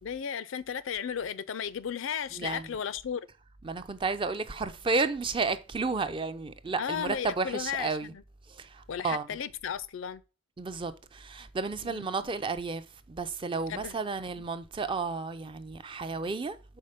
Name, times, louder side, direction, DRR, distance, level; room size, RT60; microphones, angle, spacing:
voice 1, 0.0-3.3 6.8-8.2 8.9-10.2 11.8-12.1 13.7-13.9, left 7 dB, 65° left, 0.4 m, -35 dB
voice 2, 2.3-2.7 3.6-8.1 8.5-9.3 10.6-16.6, right 4 dB, 25° right, 0.4 m, -32 dB
5.5 x 4.0 x 5.0 m
head